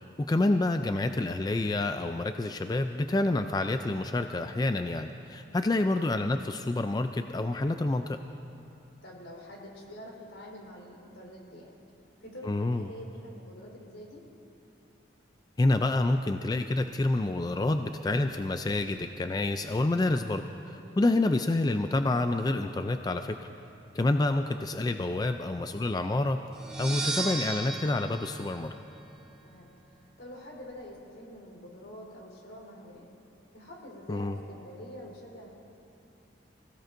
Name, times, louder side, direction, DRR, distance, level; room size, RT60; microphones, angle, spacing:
voice 1, 0.2-8.2 12.4-12.9 15.6-23.4 23.9-26.4 26.8-28.7 34.1-34.4, left 2 dB, 20° left, 7 dB, 0.3 m, -28 dB
voice 2, 9.0-11.7 12.2-14.2 20.8-21.1 29.4-29.7 30.2-33.1 33.5-35.5, equal, 85° left, -3 dB, 3.9 m, -46 dB
sound 1, 26.5-29.4, right 2 dB, 5° right, 1.0 m, -35 dB
25.0 x 16.5 x 2.6 m, 2.9 s
head